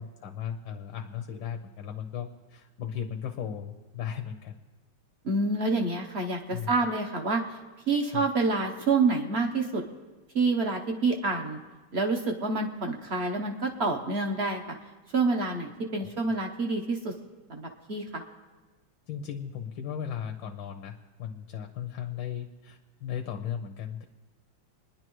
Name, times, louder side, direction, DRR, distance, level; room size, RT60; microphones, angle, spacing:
voice 1, 0.0-4.6 6.5-6.7 8.1-8.2 16.0-16.1 19.1-24.0, left 8 dB, 75° left, 4 dB, 1.5 m, -36 dB
voice 2, 5.2-7.6 7.9-9.8 10.3-11.6 11.9-14.6 15.1-17.1 17.5-18.2, right 3 dB, 50° right, 3 dB, 0.8 m, -27 dB
28.0 x 10.5 x 3.1 m, 1.2 s
omnidirectional pair, 2.2 m